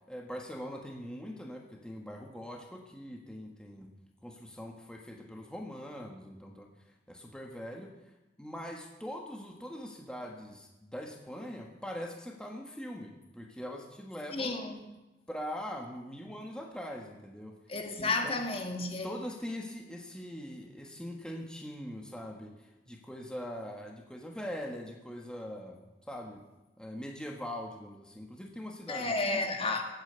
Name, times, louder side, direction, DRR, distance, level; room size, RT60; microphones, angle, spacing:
voice 1, 0.0-3.9 4.2-6.7 7.1-7.9 8.4-14.5 15.3-17.5 18.0-18.4 19.0-26.4 26.8-29.4, equal, 5° left, 1.5 m, -42 dB
voice 2, 14.3-14.8 17.7-19.1 28.9-29.8, left 3 dB, 35° left, 1.9 m, -32 dB
19.5 x 9.0 x 8.1 m
head